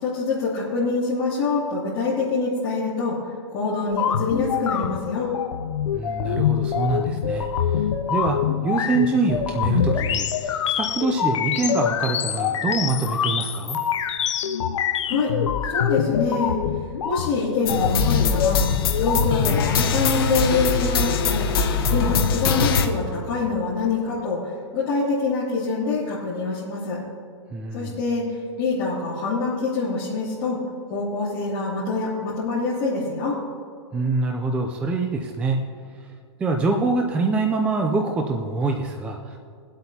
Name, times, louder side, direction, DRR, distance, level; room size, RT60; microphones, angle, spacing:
voice 1, 0.0-3.2 3.5-5.3 15.1-15.3 15.7-16.6 17.0-18.7 19.0-21.4 21.9-27.0 27.7-28.3 28.6-30.6 30.9-33.4, left 4 dB, 30° left, -11 dB, 2.6 m, -25 dB
sound 1, 3.9-19.7, left 8 dB, 80° left, 0.7 m, -25 dB
voice 2, 5.9-7.5 7.7-8.4 8.6-13.8 27.5-28.0 33.9-35.6 36.4-39.4, right 3 dB, 10° right, 3 dB, 0.4 m, -25 dB
sound 2, 17.7-22.9, left 5 dB, 50° left, 1.2 m, -22 dB
22.5 x 8.0 x 2.8 m, 2.3 s
hypercardioid pair, 155°, 15 cm